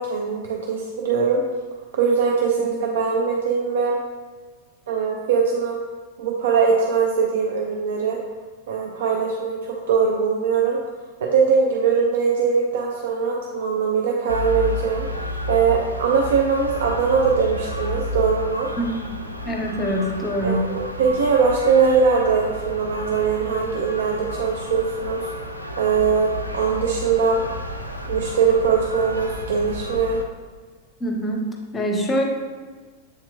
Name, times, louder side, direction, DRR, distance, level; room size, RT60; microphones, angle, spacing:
voice 1, 0.0-1.4 2.0-4.0 4.9-5.8 6.2-8.2 8.7-10.8 11.2-18.7 20.4-25.3 25.8-27.4 28.1-30.2, right 5 dB, 60° right, 0 dB, 0.4 m, -21 dB
sound 1, 14.3-30.2, left 1 dB, 90° left, 0.3 m, -32 dB
voice 2, 19.4-20.7 31.0-31.4 31.7-32.2, equal, 15° left, 2 dB, 0.7 m, -24 dB
7.5 x 2.9 x 2.2 m, 1.4 s
figure-of-eight pair, 90°, 0 cm